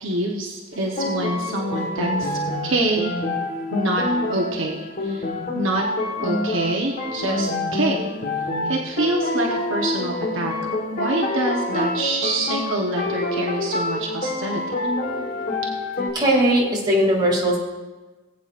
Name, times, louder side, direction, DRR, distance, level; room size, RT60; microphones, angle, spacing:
voice 1, 0.0-3.1 3.7-4.0 4.3-5.3 5.5-5.8 6.2-8.1 8.6-10.5 10.9-14.9, right 2 dB, 60° right, -1 dB, 1.0 m, -26 dB
sound 1, 0.7-16.1, left 2 dB, 40° left, 1.5 m, -27 dB
voice 2, 16.1-17.6, equal, 20° right, -3 dB, 2.6 m, -19 dB
19.0 x 8.4 x 2.5 m, 1.2 s
head